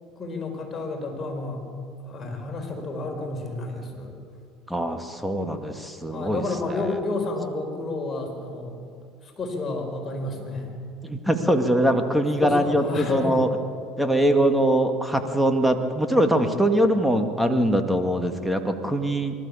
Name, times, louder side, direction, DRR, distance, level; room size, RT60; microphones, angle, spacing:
voice 1, 0.1-1.6 2.0-4.2 6.1-8.8 9.2-10.8 12.4-13.4, left 2 dB, 30° left, 2 dB, 4.9 m, -30 dB
voice 2, 4.7-6.4 11.0-13.5 14.0-19.3, right 1 dB, ahead, 5 dB, 2.2 m, -22 dB
25.0 x 13.5 x 8.6 m, 2.3 s
hypercardioid pair, 75°, 0 cm